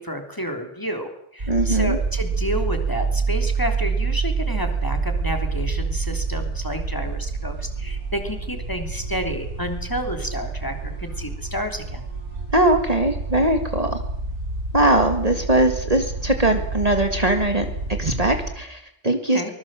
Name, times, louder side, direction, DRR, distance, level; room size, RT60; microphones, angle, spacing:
voice 1, 0.0-12.0 19.3-19.5, equal, 15° left, 5 dB, 3.2 m, -30 dB
sound 1, 1.4-18.5, right 4 dB, 85° right, 6.2 m, -28 dB
voice 2, 1.5-2.0 12.5-14.0 14.7-17.7 18.0-19.5, right 1 dB, 35° right, 5 dB, 2.0 m, -20 dB
24.5 x 20.5 x 7.6 m, 0.73 s
omnidirectional pair, 1.2 m